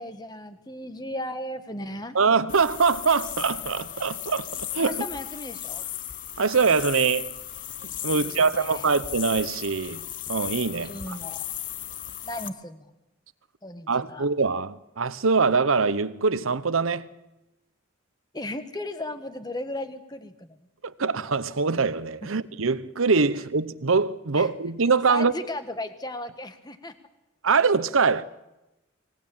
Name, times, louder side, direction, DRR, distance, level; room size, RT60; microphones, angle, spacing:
voice 1, 0.0-2.2 4.8-5.8 8.1-8.9 10.8-11.4 12.2-13.0 13.6-14.3 18.3-20.6 24.4-24.5 25.1-26.9, left 1 dB, 20° left, 1.4 m, -36 dB
voice 2, 2.1-4.5 4.7-5.0 6.4-7.3 8.0-11.2 13.9-17.1 20.8-25.3 27.4-28.2, right 4 dB, 80° right, 0.9 m, -23 dB
sound 1, 2.5-12.5, left 12 dB, 40° left, 0.7 m, -36 dB
25.0 x 18.0 x 8.7 m
head